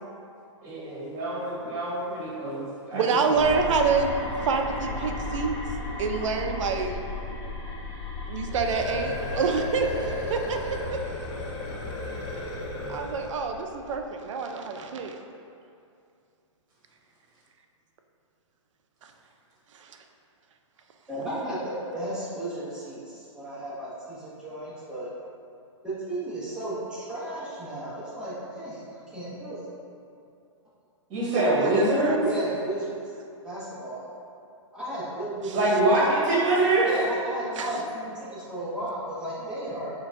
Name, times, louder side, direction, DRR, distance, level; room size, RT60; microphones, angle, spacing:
voice 1, 0.6-3.5 31.1-32.1 35.5-36.9, right 2 dB, 40° right, -8 dB, 1.4 m, -25 dB
voice 2, 2.9-5.6 6.0-7.0 8.3-10.0 10.3-11.0 12.9-15.1 19.0-19.1 19.7-20.0 31.2-32.2 35.5-35.6 37.6-37.7, right 5 dB, 70° right, 4 dB, 0.4 m, -27 dB
sound 1, 3.4-14.1, left 2 dB, 40° left, 0.9 m, -36 dB
sound 2, 8.4-13.4, left 1 dB, 20° left, 0.3 m, -34 dB
voice 3, 21.1-25.1 25.8-29.7 32.2-33.0 33.4-34.1 34.7-35.5 36.8-39.9, right 1 dB, 5° right, -10 dB, 0.7 m, -34 dB
4.6 x 2.2 x 2.5 m, 2.5 s
hypercardioid pair, 145°, 17 cm